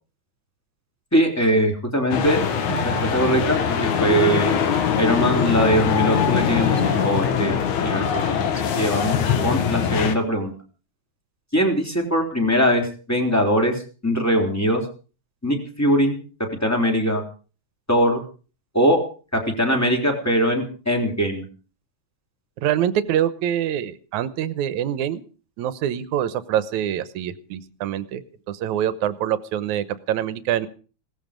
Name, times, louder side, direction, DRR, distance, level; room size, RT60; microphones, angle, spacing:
voice 1, 1.1-2.4 2.6-4.5 5.0-8.4 8.8-9.2 9.4-10.5 11.5-14.8 15.4-17.2 17.9-18.2 18.7-19.0 19.3-21.4, equal, 5° left, 2 dB, 3.3 m, -21 dB
sound 1, 2.1-10.2, left 7 dB, 75° left, 3.0 m, -22 dB
voice 2, 22.6-25.2 25.6-28.2 28.5-30.7, right 10 dB, 80° right, 14 dB, 2.3 m, -25 dB
18.0 x 15.0 x 5.2 m, 0.39 s
omnidirectional pair, 3.4 m